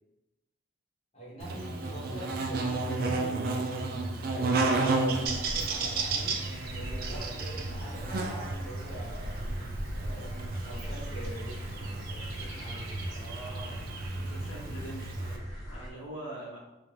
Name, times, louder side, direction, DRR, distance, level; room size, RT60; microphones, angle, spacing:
voice 1, 1.1-6.4 6.7-9.4 10.0-13.1, right 1 dB, 30° left, -6 dB, 0.9 m, -44 dB
Buzz, 1.4-15.4, right 3 dB, 45° right, 0.3 m, -32 dB
sound 1, 5.2-15.9, equal, 80° right, 0.9 m, -41 dB
voice 2, 13.1-13.8 14.2-16.6, right 1 dB, 65° left, -5 dB, 0.6 m, -43 dB
2.5 x 2.1 x 3.1 m, 1.0 s
head